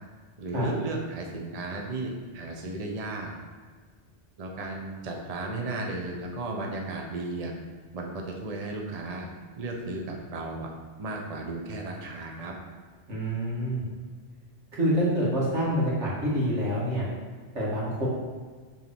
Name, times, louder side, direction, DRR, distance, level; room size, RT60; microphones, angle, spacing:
voice 1, 0.4-3.3 4.4-7.5 7.9-9.3 9.6-10.7 11.0-12.5, right 2 dB, 35° right, 1 dB, 0.8 m, -34 dB
voice 2, 13.1-13.8 14.7-17.0 17.5-18.1, equal, 85° right, -6 dB, 2.6 m, -26 dB
7.3 x 4.0 x 6.1 m, 1.5 s
omnidirectional pair, 1.2 m